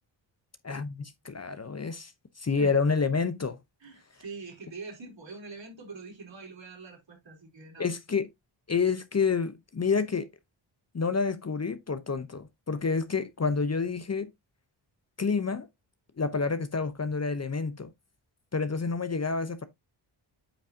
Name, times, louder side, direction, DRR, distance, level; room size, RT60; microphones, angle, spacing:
voice 1, 0.6-2.1 2.4-3.6 7.8-8.3 8.7-10.3 10.9-14.3 15.2-15.7 16.2-17.9 18.5-19.6, left 5 dB, 35° left, 0.8 m, -28 dB
voice 2, 3.8-7.9, right 3 dB, 65° right, 4.0 m, -44 dB
8.7 x 5.2 x 2.7 m
cardioid pair, 70°, 48 cm